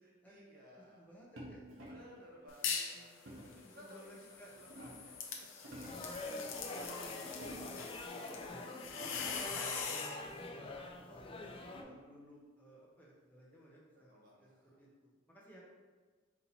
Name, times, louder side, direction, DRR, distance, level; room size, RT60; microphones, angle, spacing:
voice 1, 0.0-1.1 1.9-3.1 3.5-5.2 13.9-14.8, equal, 50° right, -2 dB, 0.9 m, -58 dB
voice 2, 1.0-1.6 1.9-2.3 2.6-3.2 3.6-4.5 5.9-6.1 6.4-7.6 8.0-9.5 9.9-11.4 11.7-15.6, equal, 10° left, -5 dB, 0.7 m, -57 dB
sound 1, 1.4-2.2 3.3-3.7 4.3-5.2 5.5-6.2 7.2-8.0 8.5-8.6 8.9-9.6 11.0-12.2, equal, 85° right, 0.9 m, -51 dB
sound 2, 2.5-3.0 3.4-10.2, left 6 dB, 85° left, 0.6 m, -42 dB
sound 3, 5.9-11.8, left 2 dB, 30° left, 0.3 m, -45 dB
4.1 x 2.8 x 4.1 m, 1.4 s
head